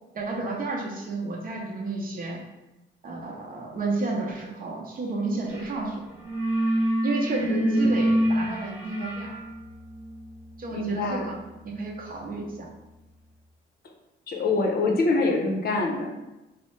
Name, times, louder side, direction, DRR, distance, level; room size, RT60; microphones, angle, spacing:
voice 1, 0.1-2.4 3.0-6.1 7.0-9.3 10.6-11.4 11.6-12.7, right 3 dB, 45° right, -1 dB, 0.7 m, -31 dB
sound 1, 5.5-5.8 6.0-12.7, right 1 dB, 10° right, 0.9 m, -28 dB
voice 2, 7.4-8.0 10.7-11.3 14.3-16.1, left 2 dB, 50° left, 1 dB, 0.6 m, -25 dB
3.2 x 2.0 x 3.1 m, 0.99 s
cardioid pair, 90°, 20 cm